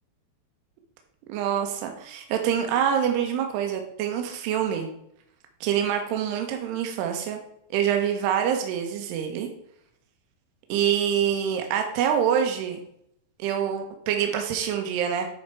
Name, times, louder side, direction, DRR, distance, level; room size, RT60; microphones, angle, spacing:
voice 1, 1.3-4.9 5.6-7.4 7.7-9.5 10.7-12.8 13.4-15.3, right 9 dB, 80° right, 4 dB, 2.4 m, -25 dB
10.5 x 4.4 x 4.7 m, 0.74 s
omnidirectional pair, 5.9 m